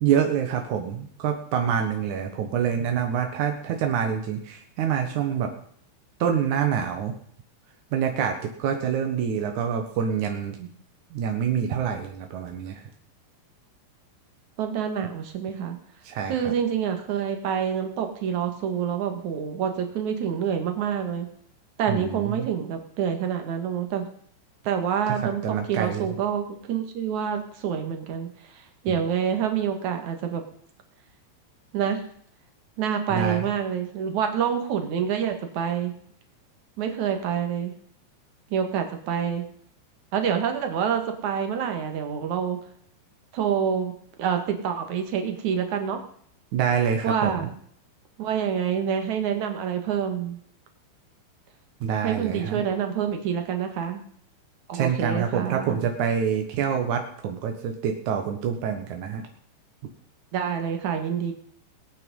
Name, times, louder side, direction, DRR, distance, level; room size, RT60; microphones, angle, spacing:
voice 1, 0.0-5.5 6.2-7.1 7.9-10.7 11.1-12.8 16.0-16.5 21.9-22.5 25.1-26.1 28.9-29.0 33.1-33.5 46.5-47.5 51.8-52.6 54.7-59.2, right 8 dB, 70° right, 4 dB, 1.9 m, -26 dB
voice 2, 14.6-15.8 16.3-21.3 21.8-24.1 24.6-30.4 31.7-32.0 32.8-35.9 36.8-37.7 38.5-39.5 40.1-42.6 43.3-46.0 47.0-47.5 48.2-50.4 52.0-54.0 54.7-55.9 60.3-61.3, right 8 dB, 50° right, 6 dB, 2.5 m, -27 dB
21.0 x 9.2 x 5.5 m, 0.64 s
omnidirectional pair, 5.4 m